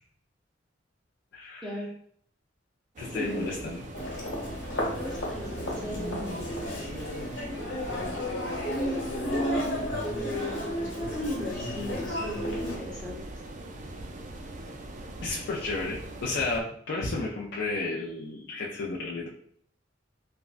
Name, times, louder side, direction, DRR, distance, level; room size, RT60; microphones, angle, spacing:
voice 1, 1.3-1.8 3.0-3.8 15.2-19.3, left 3 dB, 65° left, -5 dB, 0.4 m, -32 dB
sound 1, 3.0-16.6, right 1 dB, 40° right, 0.4 m, -43 dB
voice 2, 3.1-3.6 4.9-6.4 8.7-9.8 11.1-13.2, right 1 dB, 5° left, -5 dB, 0.6 m, -35 dB
Human voice, 3.9-12.8, left 1 dB, 80° left, 1.2 m, -33 dB
3.4 x 2.1 x 2.5 m, 0.63 s
head